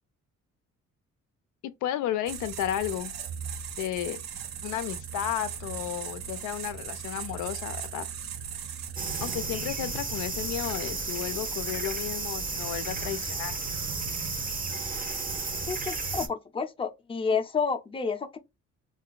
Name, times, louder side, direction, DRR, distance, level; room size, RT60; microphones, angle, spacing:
voice 1, 1.6-3.1 3.8-4.2 4.6-8.1 9.2-13.6, left 11 dB, 85° left, 0.5 m, -33 dB
sound 1, 2.3-9.4, right 7 dB, 60° right, 0.6 m, -38 dB
sound 2, 9.0-16.3, right 3 dB, 30° right, 0.8 m, -33 dB
voice 2, 15.7-18.4, left 5 dB, 20° left, 0.5 m, -30 dB
2.5 x 2.3 x 3.8 m
cardioid pair, 90°, 30 cm